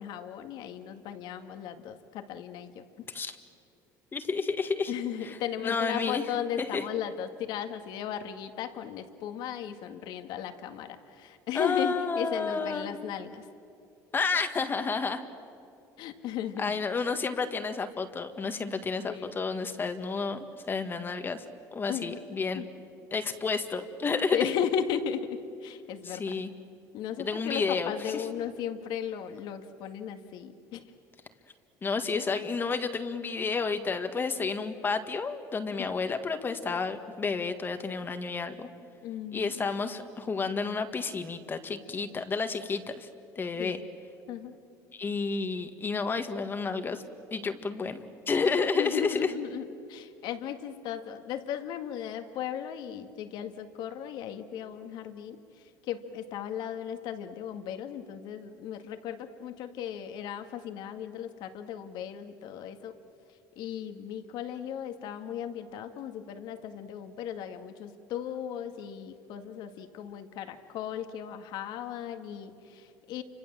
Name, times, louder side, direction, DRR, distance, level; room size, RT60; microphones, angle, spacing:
voice 1, 0.0-3.1 4.9-13.4 16.0-16.7 19.1-19.3 21.9-22.2 22.5-22.7 24.3-26.2 26.9-30.8 35.7-36.2 39.0-39.5 43.6-43.8 44.3-44.6 48.8-55.4 55.8-62.9 63.6-73.2, left 9 dB, 65° left, 7 dB, 2.0 m, -36 dB
voice 2, 4.1-4.9 5.2-5.4 5.6-6.2 6.6-6.8 11.5-13.0 14.1-15.2 16.6-21.4 21.7-22.6 23.1-24.4 26.0-26.5 27.2-28.3 31.8-38.7 39.3-43.1 43.4-43.8 44.9-47.0 47.3-49.3, left 4 dB, 25° left, 8 dB, 1.8 m, -31 dB
29.5 x 26.0 x 7.6 m, 2.6 s
cardioid pair, 115°, 8 cm